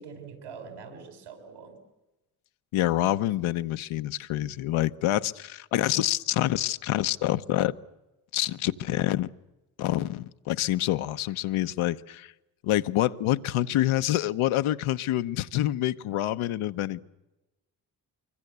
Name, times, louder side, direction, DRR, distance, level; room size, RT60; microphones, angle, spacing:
voice 1, 0.0-1.8, right 5 dB, 85° right, 6 dB, 6.4 m, -44 dB
voice 2, 2.7-7.7 8.3-9.3 9.8-12.3 12.6-17.0, left 14 dB, 80° left, 12 dB, 1.0 m, -27 dB
24.5 x 24.5 x 8.1 m, 1.0 s
hypercardioid pair, 45°, 49 cm